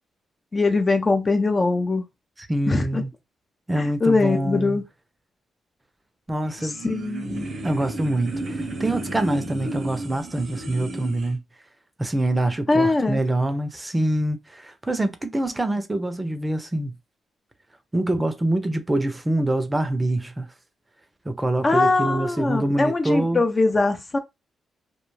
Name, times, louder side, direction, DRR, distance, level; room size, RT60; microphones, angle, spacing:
voice 1, 0.5-2.0 2.7-3.0 3.8-4.8 6.8-7.5 12.7-13.2 21.6-24.2, left 3 dB, 35° left, 0.4 m, -21 dB
voice 2, 2.4-3.1 3.7-4.8 6.3-6.8 7.6-11.4 12.0-16.9 17.9-20.5 21.3-23.4, right 1 dB, 20° right, 0.5 m, -25 dB
sound 1, 6.4-11.3, right 2 dB, 55° right, 0.6 m, -33 dB
2.4 x 2.2 x 3.0 m
cardioid pair, 70°, 0 cm